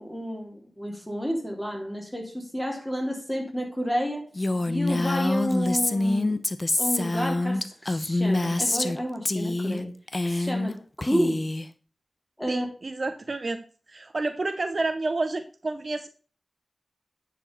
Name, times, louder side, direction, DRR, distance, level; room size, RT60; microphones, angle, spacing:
voice 1, 0.0-4.3 4.6-6.4 6.8-9.9 10.2-11.4 12.4-12.7, equal, 5° left, 1 dB, 3.3 m, -30 dB
Female speech woman speaking, 4.4-9.0 9.3-9.8 10.1-10.7 11.0-11.7, left 2 dB, 35° left, 0.8 m, -26 dB
voice 2, 12.5-16.1, right 3 dB, 50° right, 9 dB, 0.8 m, -30 dB
9.7 x 5.2 x 5.4 m, 0.37 s
cardioid pair, 55°, 0 cm